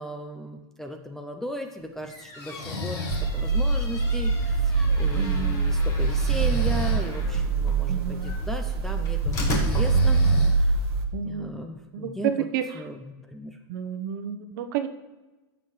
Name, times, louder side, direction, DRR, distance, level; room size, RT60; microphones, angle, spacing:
voice 1, 0.0-10.8 11.2-12.5 12.7-13.6 14.5-14.7, equal, 5° left, 5 dB, 0.4 m, -36 dB
sound 1, 1.9-10.7, left 2 dB, 25° left, 1.5 m, -35 dB
Breathing, 2.4-3.3 6.0-7.0 9.4-10.8, left 3 dB, 85° left, 2.9 m, -31 dB
sound 2, 3.1-11.0, right 4 dB, 80° right, 1.1 m, -24 dB
voice 2, 5.1-5.6 7.9-8.3 11.1-11.5 11.9-12.6 13.7-14.9, right 9 dB, 55° right, 8 dB, 0.9 m, -30 dB
15.5 x 6.6 x 3.1 m, 1.1 s
supercardioid pair, 165°, 13 cm